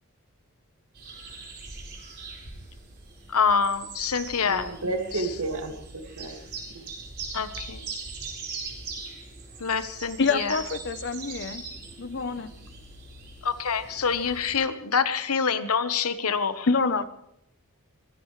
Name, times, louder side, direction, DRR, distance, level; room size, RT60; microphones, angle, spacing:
sound 1, 0.9-14.5, right 4 dB, 50° right, 4.6 m, -41 dB
voice 1, 3.3-4.7 5.1-5.4 7.3-7.9 9.6-10.6 13.4-16.7, left 6 dB, 70° left, 11 dB, 1.2 m, -26 dB
voice 2, 4.4-6.5 6.7-6.9, right 2 dB, 75° right, 5 dB, 2.2 m, -32 dB
voice 3, 10.2-11.6 12.0-12.5 16.7-17.1, left 4 dB, 55° left, 13 dB, 0.9 m, -26 dB
23.5 x 17.0 x 3.3 m, 0.79 s
head